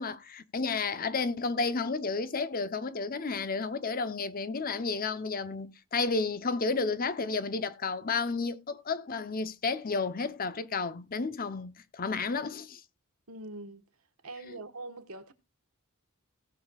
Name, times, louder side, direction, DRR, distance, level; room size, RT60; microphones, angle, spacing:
voice 1, 0.0-12.8 14.5-14.6, left 4 dB, 40° left, 0.8 m, -32 dB
voice 2, 13.3-13.8 14.2-15.3, right 2 dB, 75° right, 1.3 m, -43 dB
18.0 x 7.0 x 2.4 m
head